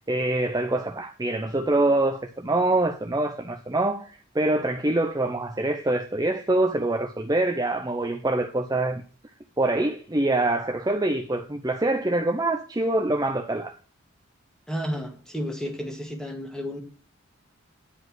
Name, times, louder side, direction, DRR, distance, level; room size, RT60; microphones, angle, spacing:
voice 1, 0.1-9.0 9.6-13.7, right 2 dB, 15° right, 0.6 m, -25 dB
voice 2, 14.7-16.8, equal, 5° left, 2.0 m, -32 dB
9.9 x 5.4 x 7.5 m
head